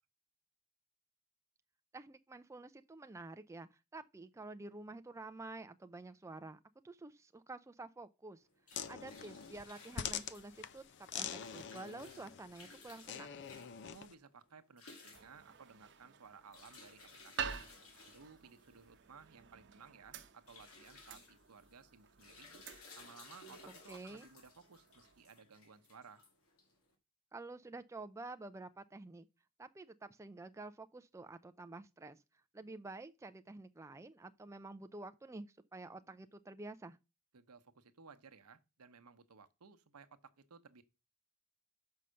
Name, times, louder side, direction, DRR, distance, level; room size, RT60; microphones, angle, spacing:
voice 1, 1.9-6.6 6.8-8.4 8.9-13.4 23.5-23.6 23.9-24.3 27.3-29.3 29.6-32.2 32.5-37.0, right 2 dB, 15° right, 0.3 m, -50 dB
sound 1, 8.4-26.9, left 3 dB, 70° left, 1.9 m, -59 dB
sound 2, 8.7-14.1, left 8 dB, 55° left, 0.5 m, -45 dB
voice 2, 13.8-17.7 18.0-22.5 22.9-26.2 37.3-40.8, right 5 dB, 85° right, 0.9 m, -58 dB
sound 3, 15.1-25.3, right 7 dB, 55° right, 0.8 m, -49 dB
5.6 x 5.4 x 6.2 m
head